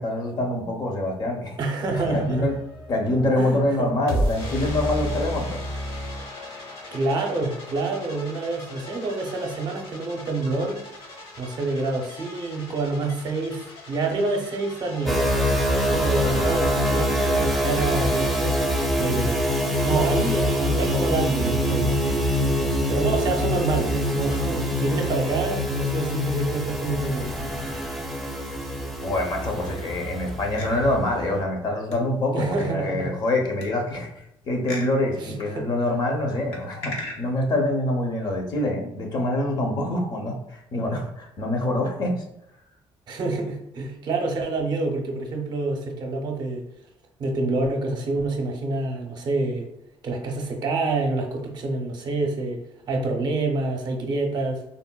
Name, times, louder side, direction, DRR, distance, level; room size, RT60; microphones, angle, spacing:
voice 1, 0.0-1.6 1.9-2.6 2.9-5.6 29.0-34.1 34.5-42.2, left 1 dB, 45° left, 2 dB, 0.6 m, -25 dB
voice 2, 1.6-2.5 3.4-3.9 6.9-10.8 11.4-15.3 15.9-18.6 19.0-19.4 19.8-21.9 22.9-27.3 32.3-33.1 35.2-35.7 43.1-46.6 47.2-49.7 50.0-54.6, right 3 dB, 45° right, 2 dB, 0.6 m, -27 dB
sound 1, 1.9-18.2, equal, 65° left, 1.0 m, -35 dB
sound 2, 15.1-31.4, equal, ahead, 0.5 m, -24 dB
sound 3, 29.7-30.3 30.6-30.7 31.9-32.6 33.6-34.3 34.7-34.9 36.5-37.2, left 2 dB, 85° left, 0.7 m, -38 dB
3.8 x 2.1 x 2.2 m, 0.84 s
cardioid pair, 125°, 10 cm